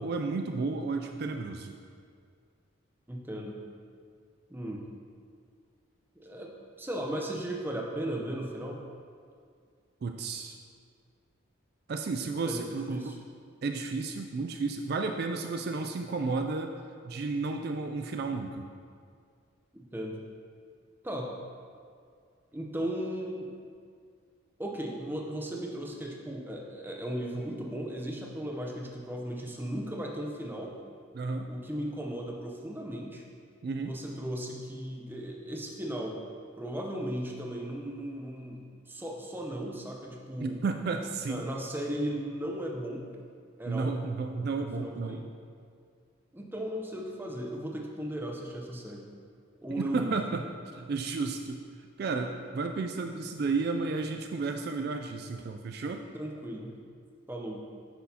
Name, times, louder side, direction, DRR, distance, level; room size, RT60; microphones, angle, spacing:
voice 1, 0.0-1.7 10.0-10.6 11.9-13.1 13.6-16.7 17.0-18.7 31.1-31.5 33.6-33.9 40.4-41.5 43.7-45.2 49.8-50.4 50.7-51.6 52.0-56.0, right 4 dB, 50° right, 5 dB, 0.3 m, -32 dB
voice 2, 3.1-3.6 4.5-4.8 6.2-8.8 12.4-13.1 19.7-20.2 21.0-21.3 22.5-23.5 24.6-30.8 31.5-33.2 33.8-36.2 36.6-40.6 41.3-43.1 43.6-44.0 44.6-45.2 46.3-49.1 49.6-50.2 56.1-56.7 57.3-57.6, right 1 dB, 10° right, 0 dB, 0.6 m, -36 dB
9.5 x 6.2 x 2.8 m, 2.2 s
head